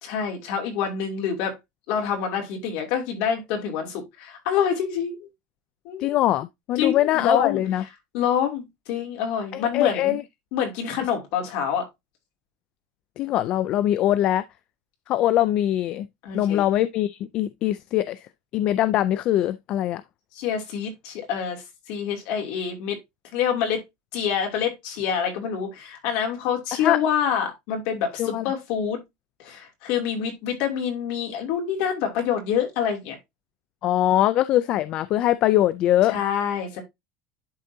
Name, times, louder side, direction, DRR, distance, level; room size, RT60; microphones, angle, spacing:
voice 1, 0.0-1.6 1.9-5.3 5.8-6.2 6.8-7.6 8.1-10.1 10.5-11.9 16.2-16.6 20.3-23.0 23.3-23.8 24.1-29.0 29.4-33.2 36.1-36.8, left 8 dB, 50° left, 2.5 m, -26 dB
voice 2, 6.0-7.8 9.5-10.2 13.2-14.4 15.1-16.1 16.3-18.3 18.5-20.0 26.8-27.0 28.2-28.5 33.8-36.2, left 13 dB, 35° left, 0.3 m, -22 dB
11.0 x 3.9 x 2.7 m
cardioid pair, 175°, 3 cm